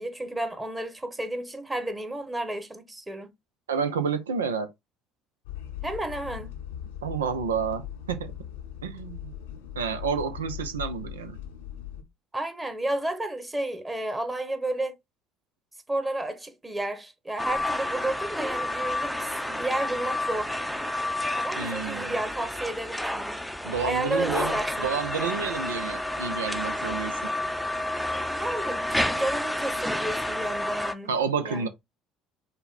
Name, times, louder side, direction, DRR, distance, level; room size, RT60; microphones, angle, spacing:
voice 1, 0.0-3.3 5.8-6.5 12.3-14.9 15.9-20.6 21.3-23.4 23.8-24.9 28.3-31.1 31.4-31.7, right 1 dB, 15° right, 1.2 m, -32 dB
voice 2, 3.7-4.7 7.0-8.3 8.8-9.3 9.8-11.4 21.6-22.2 23.6-27.2 31.1-31.7, right 6 dB, 85° right, 0.5 m, -30 dB
sound 1, 5.5-12.0, left 10 dB, 75° left, 0.7 m, -39 dB
sound 2, 17.4-30.9, left 1 dB, ahead, 0.6 m, -30 dB
5.5 x 2.2 x 4.0 m
hypercardioid pair, 60°, 0 cm